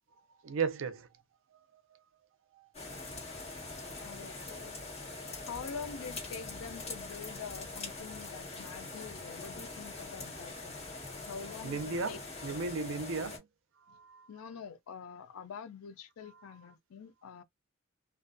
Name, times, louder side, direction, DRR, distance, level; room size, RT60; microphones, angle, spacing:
voice 1, 0.4-1.1 1.9-2.0 2.5-2.7 3.5-3.7 11.6-13.4 13.9-14.3, right 4 dB, 65° right, 0.5 m, -36 dB
sound 1, 2.7-13.4, left 3 dB, 30° left, 1.2 m, -43 dB
voice 2, 4.0-4.8 5.5-10.8 11.2-12.2 14.3-17.4, left 6 dB, 85° left, 0.4 m, -46 dB
2.4 x 2.2 x 2.5 m
head